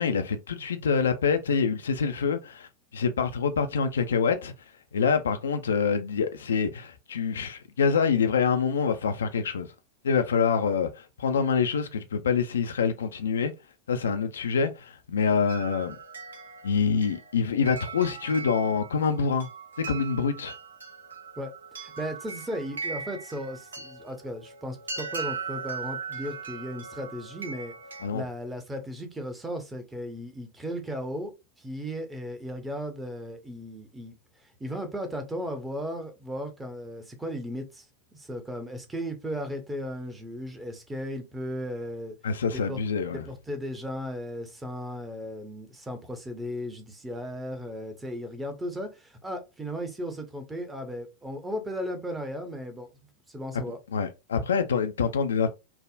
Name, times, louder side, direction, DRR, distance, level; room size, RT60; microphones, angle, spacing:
voice 1, 0.0-4.5 4.9-9.7 10.0-13.5 13.9-16.0 16.6-19.5 19.8-20.5 28.0-28.3 42.2-43.2 53.5-53.6 53.9-55.5, left 6 dB, 65° left, 0.3 m, -26 dB
sound 1, 15.5-28.1, right 5 dB, 70° right, 0.5 m, -39 dB
voice 2, 21.4-27.7 28.1-37.9 38.1-42.2 42.5-42.8 43.1-53.8, equal, 10° right, 0.7 m, -36 dB
3.3 x 2.0 x 2.4 m
figure-of-eight pair, 90°, 0 cm